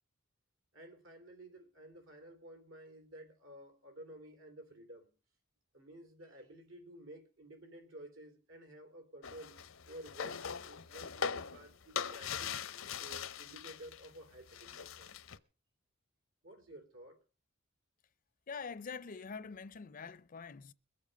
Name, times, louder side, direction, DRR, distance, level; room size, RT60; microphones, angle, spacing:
voice 1, 0.7-5.1 5.7-9.6 9.9-12.6 13.0-15.1 16.4-17.2, right 1 dB, 75° right, 3.1 m, -53 dB
sound 1, 9.2-14.1 14.4-15.4, left 7 dB, 75° left, 0.8 m, -41 dB
voice 2, 18.5-20.7, left 5 dB, 45° left, 0.6 m, -45 dB
22.0 x 7.4 x 5.3 m
head